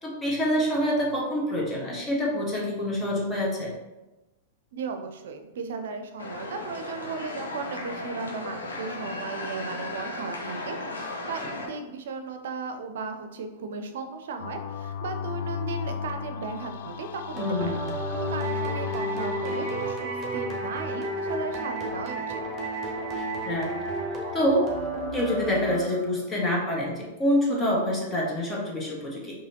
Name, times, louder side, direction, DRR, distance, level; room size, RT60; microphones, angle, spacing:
voice 1, 0.0-3.7 17.4-17.8 23.4-23.7 24.3-24.6 25.1-29.3, equal, 20° left, -3 dB, 1.3 m, -26 dB
voice 2, 4.7-17.8 18.2-22.4, right 5 dB, 65° right, 7 dB, 0.5 m, -36 dB
sound 1, 6.2-11.7, left 2 dB, 85° left, 0.7 m, -35 dB
sound 2, 14.4-19.9, left 7 dB, 65° left, 0.3 m, -34 dB
sound 3, 17.4-26.3, right 2 dB, 25° right, 1.1 m, -32 dB
4.8 x 2.9 x 2.8 m, 1.0 s
hypercardioid pair, 105°, 0 cm